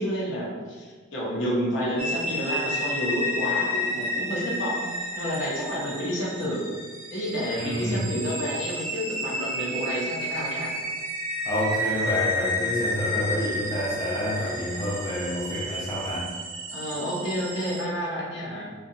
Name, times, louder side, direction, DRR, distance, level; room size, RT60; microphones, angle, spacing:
voice 1, 0.0-4.9 5.2-6.7 7.1-10.7 16.7-18.7, equal, 60° left, -4 dB, 0.6 m, -30 dB
sound 1, 2.0-17.8, left 1 dB, 80° right, 0.5 m, -31 dB
voice 2, 7.5-8.1 11.4-16.3, equal, 20° left, -7 dB, 0.4 m, -28 dB
2.7 x 2.2 x 2.5 m, 1.5 s
head